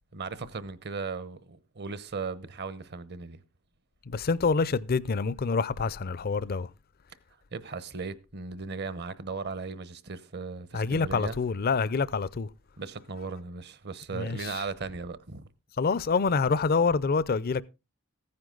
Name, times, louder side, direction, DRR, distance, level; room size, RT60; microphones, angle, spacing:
voice 1, 0.1-3.4 7.5-11.4 12.8-15.5, right 4 dB, 55° right, 0.9 m, -37 dB
voice 2, 4.1-6.7 10.7-12.5 14.1-14.6 15.8-17.6, left 4 dB, 45° left, 0.5 m, -26 dB
15.0 x 9.8 x 3.9 m
head